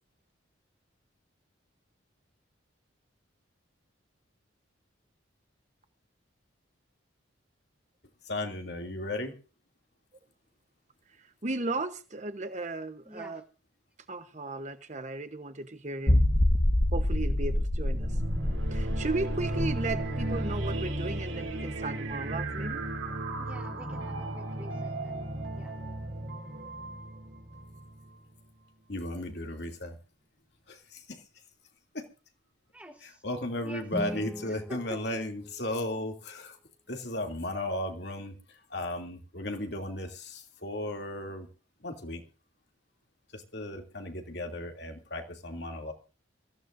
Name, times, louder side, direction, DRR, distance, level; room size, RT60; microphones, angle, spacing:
voice 1, 8.3-9.4 28.9-30.0 30.7-31.2 31.9-32.0 33.0-36.6 36.9-38.3 38.7-41.5 41.8-42.2 43.3-45.9, left 1 dB, 55° left, 3 dB, 2.8 m, -35 dB
voice 2, 11.2-13.4 14.1-16.2 16.9-18.2 18.7-22.8, right 2 dB, 35° right, 9 dB, 1.0 m, -35 dB
voice 3, 13.1-13.4 23.4-25.3 25.6-25.8 32.7-33.2 33.6-35.0, right 1 dB, 5° right, 1 dB, 3.6 m, -47 dB
sound 1, 16.1-21.5 21.8-21.9 22.4-22.5, left 1 dB, 35° left, 1.2 m, -27 dB
sound 2, 17.9-28.1, right 1 dB, 80° right, 3.3 m, -35 dB
sound 3, 33.9-36.1, equal, 10° left, 1.2 m, -40 dB
25.0 x 15.0 x 2.6 m, 0.33 s
head